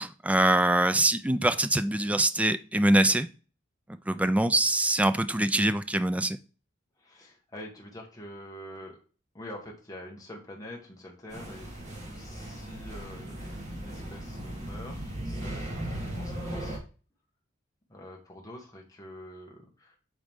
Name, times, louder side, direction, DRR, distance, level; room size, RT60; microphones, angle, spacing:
voice 1, 0.0-3.3 3.9-6.4, right 1 dB, 5° right, 0.3 m, -24 dB
voice 2, 7.0-9.0 9.3-16.8 17.9-20.0, left 1 dB, 15° left, 1.5 m, -46 dB
sound 1, 11.3-16.8, right 1 dB, 40° right, 2.0 m, -37 dB
8.2 x 4.0 x 3.6 m
head